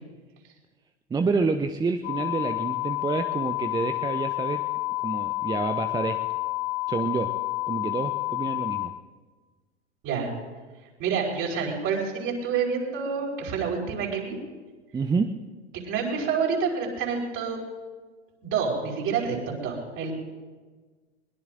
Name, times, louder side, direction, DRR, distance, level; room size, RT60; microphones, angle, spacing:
voice 1, 1.1-4.6 5.0-6.2 6.9-7.3 7.7-8.9 14.9-15.3, right 4 dB, 10° right, 7 dB, 0.6 m, -28 dB
sound 1, 2.0-8.9, left 22 dB, 40° left, 1.4 m, -29 dB
voice 2, 11.0-14.4 15.8-17.6 18.4-20.1, right 6 dB, 40° right, 0 dB, 4.5 m, -28 dB
21.5 x 21.5 x 2.6 m, 1.4 s
figure-of-eight pair, 85°, 35 cm